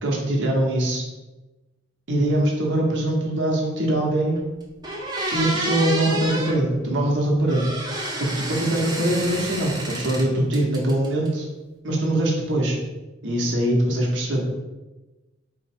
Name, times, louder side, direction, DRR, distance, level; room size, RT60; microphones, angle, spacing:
voice 1, 0.0-1.0 2.1-4.4 5.3-7.6 8.2-11.5 11.8-12.8 13.2-14.5, right 1 dB, 70° right, -1 dB, 0.9 m, -22 dB
sound 1, 4.3-4.4 4.8-6.6 7.5-10.3 10.5-11.3, right 1 dB, 20° right, 0.6 m, -29 dB
4.3 x 2.0 x 4.3 m, 1.1 s
head